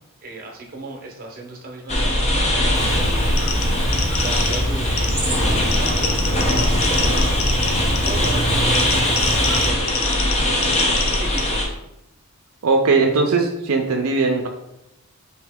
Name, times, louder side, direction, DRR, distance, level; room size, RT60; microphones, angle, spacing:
voice 1, 0.2-7.6 8.0-11.7, right 2 dB, 40° right, 0 dB, 0.8 m, -36 dB
sound 1, 1.9-11.6, left 1 dB, 30° left, 0.6 m, -21 dB
Chirp tweet, 2.7-9.7, equal, 5° left, 0.9 m, -25 dB
sound 2, 3.4-11.4, left 5 dB, 70° left, 0.7 m, -28 dB
voice 2, 12.6-14.5, right 4 dB, 75° right, 2 dB, 0.5 m, -19 dB
4.3 x 2.8 x 3.4 m, 0.84 s
head